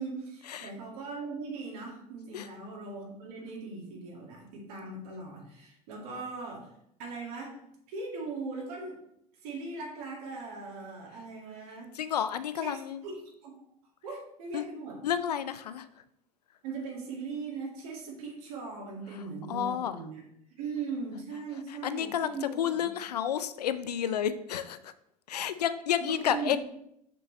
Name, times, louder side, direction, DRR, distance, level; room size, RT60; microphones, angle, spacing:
voice 1, 0.0-6.7 7.0-7.6 7.9-9.0 9.4-11.9 12.6-13.2 13.4-13.6 14.0-15.0 16.6-20.2 20.6-22.9 26.0-26.6, right 4 dB, 70° right, -1 dB, 2.1 m, -39 dB
voice 2, 11.9-13.0 14.5-14.7 15.0-15.9 19.5-20.0 21.7-24.9 25.3-26.6, left 9 dB, 85° left, 13 dB, 0.5 m, -31 dB
6.7 x 5.4 x 3.2 m, 0.76 s
hypercardioid pair, 75°, 20 cm